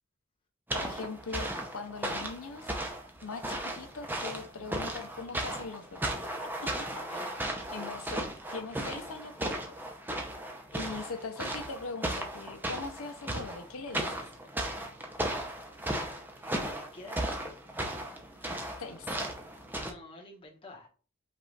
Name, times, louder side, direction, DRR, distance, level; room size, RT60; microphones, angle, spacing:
voice 1, 0.7-2.7 3.2-6.2 6.6-6.7 7.7-9.7 10.7-14.3 18.8-19.1, left 4 dB, 85° left, 0.6 m, -41 dB
sound 1, 0.7-19.9, right 1 dB, 10° right, 0.6 m, -36 dB
voice 2, 6.9-7.3 16.4-17.6 19.8-20.9, left 2 dB, 25° left, 1.1 m, -49 dB
5.4 x 2.5 x 3.8 m
head